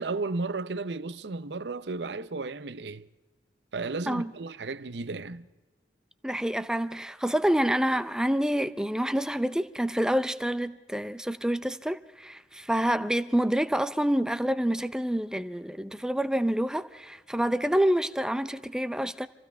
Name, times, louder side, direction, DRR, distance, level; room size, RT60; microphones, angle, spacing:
voice 1, 0.0-3.1 3.7-5.5, right 3 dB, 70° right, 0.7 m, -34 dB
voice 2, 6.2-19.3, right 1 dB, 5° right, 0.6 m, -27 dB
27.5 x 15.5 x 3.4 m
head